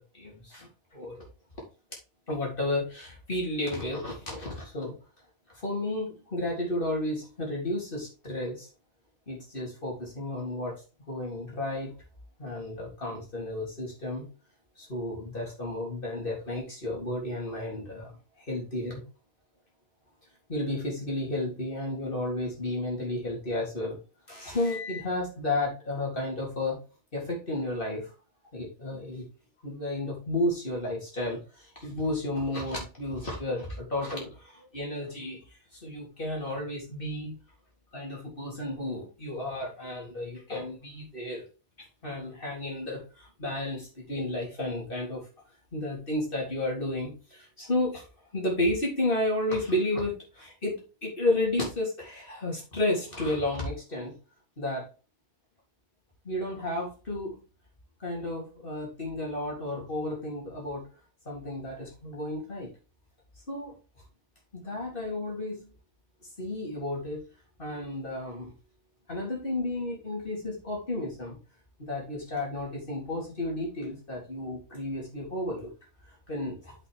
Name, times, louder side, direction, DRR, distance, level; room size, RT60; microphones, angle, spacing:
voice 1, 0.1-1.2 2.3-4.9 5.6-8.7 9.3-10.8 11.1-11.9 12.4-14.3 14.8-18.1 18.5-19.0 20.5-24.0 24.3-26.8 27.1-28.1 28.5-29.2 29.6-35.4 35.7-37.4 37.9-41.4 42.0-45.2 45.7-48.0 48.3-54.1 54.6-54.9 56.2-57.4 58.0-60.8 61.3-62.7 63.5-63.7 64.6-65.7 66.4-67.2 67.6-68.5 69.1-71.4 71.8-75.7 76.3-76.7, left 1 dB, 35° left, -3 dB, 3.9 m, -32 dB
7.4 x 6.3 x 3.7 m, 0.33 s
omnidirectional pair, 1.5 m